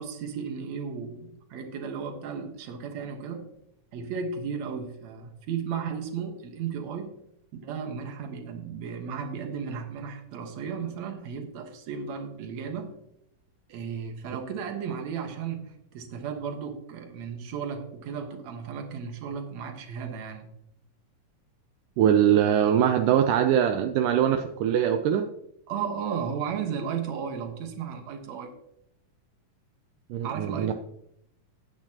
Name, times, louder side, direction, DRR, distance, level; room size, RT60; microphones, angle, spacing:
voice 1, 0.0-3.5 3.9-7.1 7.5-12.9 13.7-20.5 25.7-28.5 30.2-30.7, right 6 dB, 60° right, 5 dB, 2.4 m, -34 dB
voice 2, 22.0-25.3 30.1-30.7, right 9 dB, 80° right, 6 dB, 2.1 m, -22 dB
15.0 x 8.8 x 2.9 m, 0.78 s
omnidirectional pair, 3.7 m